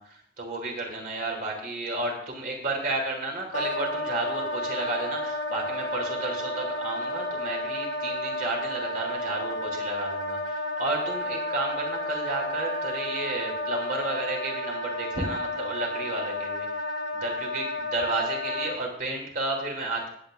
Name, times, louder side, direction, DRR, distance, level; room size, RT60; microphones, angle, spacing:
voice 1, 0.0-16.7 17.1-20.1, right 2 dB, 50° right, 0 dB, 3.4 m, -32 dB
Wind instrument woodwind instrument, 3.5-18.8, left 1 dB, 80° left, 1.3 m, -31 dB
18.0 x 9.1 x 2.6 m, 0.66 s
head